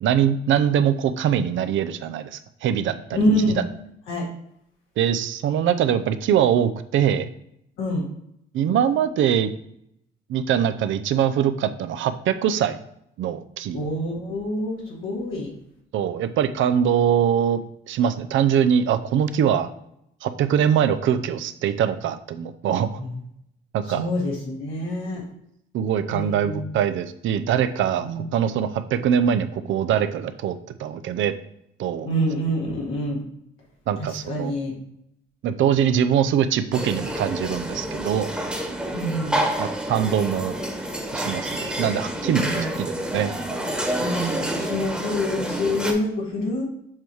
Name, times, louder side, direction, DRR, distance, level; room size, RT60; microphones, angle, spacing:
voice 1, 0.0-3.2 5.0-7.3 8.5-9.5 10.3-12.8 13.2-13.8 15.9-17.6 17.9-19.7 20.2-23.0 23.7-24.1 25.7-31.3 31.8-32.1 33.9-34.5 35.4-38.3 39.6-40.6 41.1-43.3, right 9 dB, 75° right, 10 dB, 0.6 m, -23 dB
voice 2, 3.1-3.6 4.1-4.3 7.8-8.1 13.7-15.5 23.0-23.2 23.9-25.2 26.1-26.7 28.0-28.2 32.0-33.2 34.0-34.7 38.9-39.4 42.4-42.7 44.0-46.6, equal, 90° left, -4 dB, 1.9 m, -26 dB
sound 1, 36.7-45.9, right 1 dB, 5° right, 1.2 m, -28 dB
7.4 x 3.0 x 4.8 m, 0.76 s
cardioid pair, 90°, 20 cm